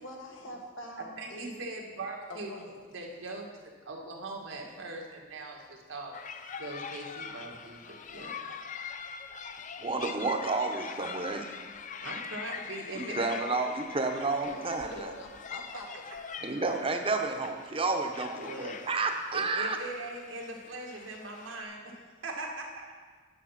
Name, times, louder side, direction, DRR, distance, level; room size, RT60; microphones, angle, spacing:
voice 1, 0.0-1.5 2.3-2.8 13.1-13.4 14.4-16.1, left 1 dB, 85° left, 1 dB, 1.7 m, -44 dB
voice 2, 1.0-2.5 2.9-6.1 6.6-8.3 12.0-13.3 14.2-14.3 18.4-18.8 19.3-22.9, right 2 dB, 90° right, 0 dB, 1.8 m, -41 dB
sound 1, 6.1-21.6, left 6 dB, 40° left, 0.5 m, -43 dB
voice 3, 9.8-11.5 12.9-15.1 16.4-19.8, right 3 dB, 30° right, 4 dB, 0.8 m, -31 dB
9.9 x 7.1 x 5.8 m, 1.5 s
head